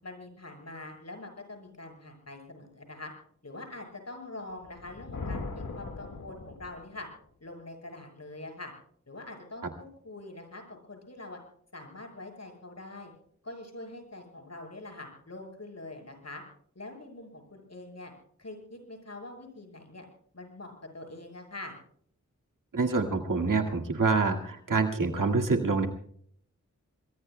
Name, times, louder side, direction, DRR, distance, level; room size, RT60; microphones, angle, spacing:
voice 1, 0.0-3.1 3.4-7.1 7.4-8.7 9.1-11.4 11.7-13.1 13.4-16.4 16.8-18.1 18.4-20.0 20.3-21.8, left 2 dB, 55° left, 3 dB, 7.2 m, -44 dB
Thunder, 4.6-7.1, left 3 dB, 85° left, 1.8 m, -39 dB
voice 2, 22.7-25.9, right 4 dB, 90° right, 3 dB, 2.1 m, -26 dB
27.0 x 21.5 x 2.2 m, 0.62 s
cardioid pair, 40°, 31 cm